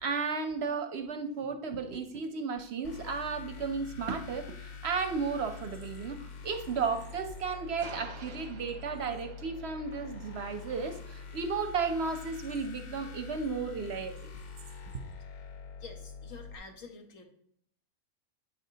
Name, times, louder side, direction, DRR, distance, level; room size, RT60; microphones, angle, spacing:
voice 1, 0.0-14.3, right 5 dB, 65° right, 7 dB, 0.8 m, -34 dB
sound 1, 2.8-16.6, left 5 dB, 60° left, 0.4 m, -45 dB
sound 2, 4.9-12.4, right 4 dB, 35° right, 0.4 m, -52 dB
voice 2, 15.8-17.2, left 4 dB, 80° left, 4 dB, 1.4 m, -48 dB
8.5 x 5.3 x 2.7 m, 0.67 s
omnidirectional pair, 1.4 m